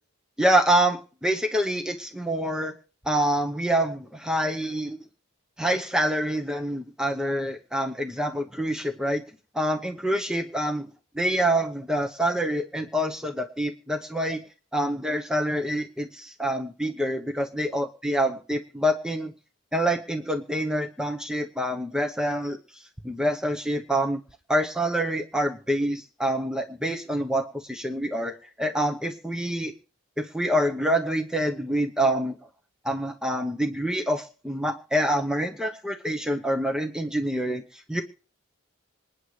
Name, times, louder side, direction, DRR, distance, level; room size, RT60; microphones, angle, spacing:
voice 1, 0.4-2.7 3.0-5.0 5.6-9.2 9.5-10.9 11.1-14.4 14.7-19.3 19.7-24.2 24.5-29.7 30.2-32.4 32.8-38.0, right 1 dB, 5° right, 4 dB, 0.9 m, -26 dB
26.5 x 9.5 x 3.2 m, 0.39 s
head